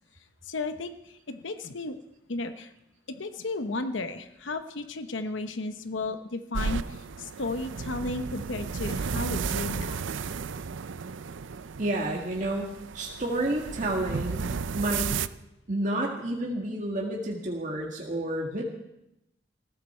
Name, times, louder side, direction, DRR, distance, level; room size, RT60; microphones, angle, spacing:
voice 1, 0.4-2.0 2.3-2.7 3.1-10.0, left 3 dB, 90° left, 9 dB, 0.9 m, -34 dB
sound 1, 6.5-15.3, right 5 dB, 85° right, 0.5 m, -33 dB
voice 2, 11.8-15.1 15.7-18.6, right 1 dB, 40° right, -1 dB, 1.9 m, -30 dB
19.5 x 15.0 x 4.4 m, 0.87 s
head